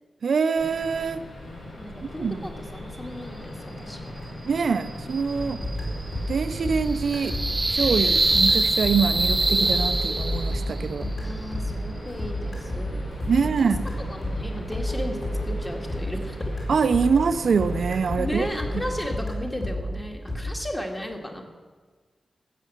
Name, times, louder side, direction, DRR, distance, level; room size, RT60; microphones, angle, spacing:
voice 1, 0.2-1.2 2.0-2.5 4.4-5.6 6.3-7.4 7.7-11.1 13.3-13.9 16.7-18.5, right 5 dB, 70° right, 11 dB, 0.6 m, -24 dB
sound 1, 0.6-19.2, left 1 dB, 80° left, 4.3 m, -39 dB
voice 2, 1.8-4.1 5.4-5.9 11.2-13.4 14.1-15.2 15.4-16.5 18.2-21.5, left 1 dB, 15° left, 2 dB, 2.0 m, -35 dB
sound 2, 4.8-10.8, right 2 dB, 25° right, 0.4 m, -25 dB
sound 3, 5.4-17.3 17.6-20.4, equal, 35° left, 4.5 m, -30 dB
14.5 x 6.9 x 8.3 m, 1.5 s
wide cardioid pair, 105°, 0 cm